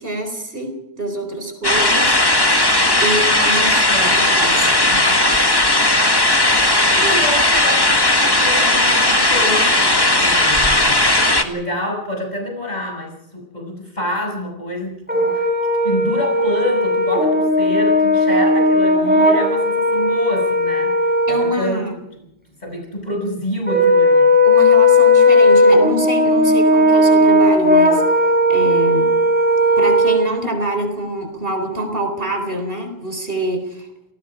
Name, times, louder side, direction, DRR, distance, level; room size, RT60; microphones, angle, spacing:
voice 1, 0.0-2.2 3.0-5.2 6.9-7.1 21.3-21.9 24.4-28.0 28.5-29.1 29.8-33.9, right 1 dB, 65° right, 5 dB, 4.4 m, -26 dB
sound 1, 1.6-11.4, left 1 dB, 20° left, 1.8 m, -16 dB
voice 2, 3.9-4.9 7.0-15.5 15.8-21.8 22.6-24.3, left 1 dB, 45° left, 1 dB, 7.4 m, -27 dB
Brass instrument, 15.1-21.6 23.7-30.2, left 1 dB, 10° right, 4.4 m, -15 dB
29.0 x 19.5 x 5.1 m, 0.82 s
omnidirectional pair, 1.0 m